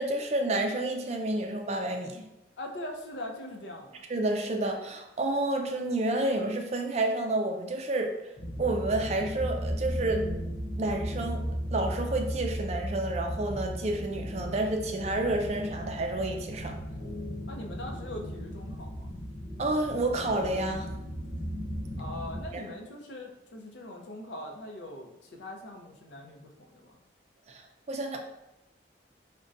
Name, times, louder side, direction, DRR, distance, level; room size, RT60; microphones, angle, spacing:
voice 1, 0.0-2.2 4.1-8.1 8.6-10.2 10.8-11.4 11.7-16.8 19.6-20.9 22.5-22.6 27.5-27.6 27.9-28.2, right 2 dB, 35° right, 3 dB, 0.3 m, -29 dB
voice 2, 2.6-4.0 17.5-19.1 22.0-27.0, left 1 dB, 75° left, 2 dB, 0.6 m, -41 dB
sound 1, 8.4-22.4, equal, 30° left, 0.7 m, -36 dB
5.1 x 2.2 x 2.5 m, 0.94 s
head